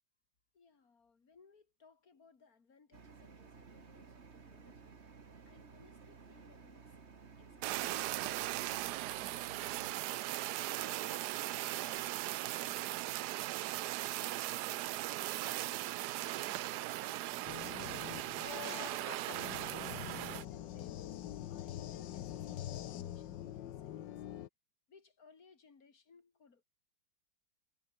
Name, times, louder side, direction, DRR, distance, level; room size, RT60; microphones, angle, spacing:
voice 1, 0.5-4.9 5.5-6.8 7.4-8.1 8.4-9.9 10.7-13.5 14.1-15.0 15.4-19.3 20.2-21.2 21.5-24.2 24.9-26.6, left 5 dB, 55° left, 2.9 m, -64 dB
sound 1, 2.9-9.9, right 5 dB, 40° right, 1.9 m, -56 dB
Fire, 7.6-20.4, right 16 dB, 75° right, 1.1 m, -38 dB
sound 2, 17.5-24.5, left 12 dB, 90° left, 1.6 m, -44 dB
omnidirectional pair, 1.9 m